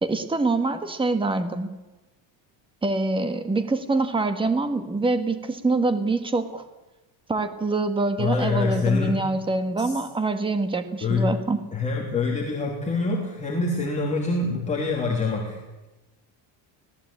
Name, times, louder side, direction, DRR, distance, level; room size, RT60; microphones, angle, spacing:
voice 1, 0.0-1.7 2.8-6.6 7.3-11.6, right 3 dB, 10° right, 9 dB, 1.6 m, -25 dB
voice 2, 8.2-9.2 9.8-10.0 11.0-11.3 11.7-15.6, left 3 dB, 15° left, -2 dB, 3.1 m, -25 dB
25.0 x 18.0 x 8.7 m, 1.1 s
cardioid pair, 165°, 49 cm